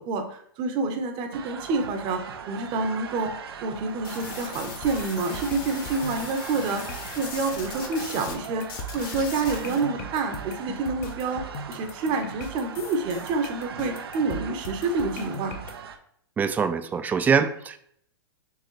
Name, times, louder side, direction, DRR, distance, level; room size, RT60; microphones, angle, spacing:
voice 1, 0.0-3.3 3.6-6.8 7.2-8.7 8.9-11.4 11.7-15.6, right 3 dB, 40° right, 6 dB, 0.8 m, -28 dB
sound 1, 1.3-16.0, right 7 dB, 80° right, 0.6 m, -39 dB
sound 2, 4.0-8.4 8.6-9.8, left 5 dB, 60° left, 1.4 m, -39 dB
sound 3, 4.8-15.7, left 1 dB, 45° left, 0.7 m, -39 dB
voice 2, 16.4-17.8, right 6 dB, 15° right, 10 dB, 0.3 m, -23 dB
4.7 x 3.2 x 3.2 m, 0.67 s
hypercardioid pair, 120°, 13 cm